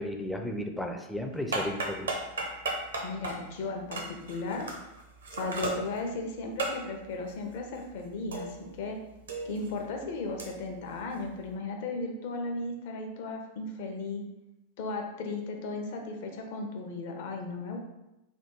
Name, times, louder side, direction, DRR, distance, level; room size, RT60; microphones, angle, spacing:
voice 1, 0.0-2.2, left 1 dB, 5° left, 4 dB, 0.4 m, -34 dB
sound 1, 1.3-8.9 9.1-11.5, right 2 dB, 70° right, 0.7 m, -37 dB
voice 2, 3.0-4.7 5.3-8.5 8.8-9.0 9.4-14.2 14.8-17.8, left 3 dB, 50° left, 3 dB, 0.6 m, -35 dB
3.4 x 2.2 x 4.4 m, 0.93 s
figure-of-eight pair, 90°, 0 cm